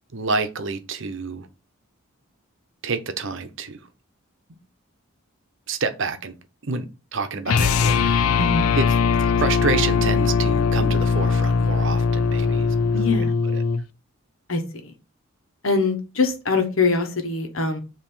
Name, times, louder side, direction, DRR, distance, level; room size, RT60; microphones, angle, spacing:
voice 1, 0.1-1.5 2.8-3.9 5.7-6.3 6.6-6.9 7.1-8.4 8.7-8.9 9.2-13.2 13.5-13.6, right 4 dB, 60° right, 0.9 m, -28 dB
sound 1, 7.5-13.8, left 5 dB, 90° left, 0.4 m, -20 dB
voice 2, 12.9-13.3 14.5-14.9 15.6-17.8, left 3 dB, 70° left, 1.4 m, -23 dB
7.2 x 3.0 x 5.4 m
head